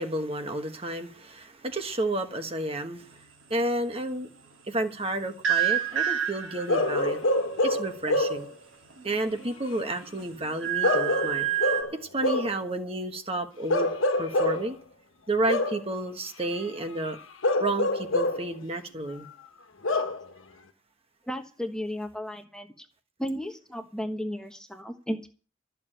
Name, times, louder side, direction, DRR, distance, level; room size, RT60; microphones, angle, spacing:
voice 1, 0.0-3.1 3.5-4.3 4.7-7.2 7.6-8.5 9.0-11.5 12.1-13.9 14.2-14.8 15.3-17.2 17.6-19.3, right 1 dB, 30° right, 1.3 m, -31 dB
sound 1, 5.4-6.9 8.9-9.6 10.0-11.8, right 11 dB, 90° right, 3.1 m, -28 dB
Bark / Livestock farm animals working animals, 6.7-8.5 10.8-12.6 13.7-14.7 15.5-15.9 17.4-18.5 19.8-20.2, left 2 dB, 85° left, 1.4 m, -26 dB
voice 2, 21.2-22.8 23.2-25.3, equal, 5° left, 1.2 m, -34 dB
13.0 x 7.0 x 8.9 m
head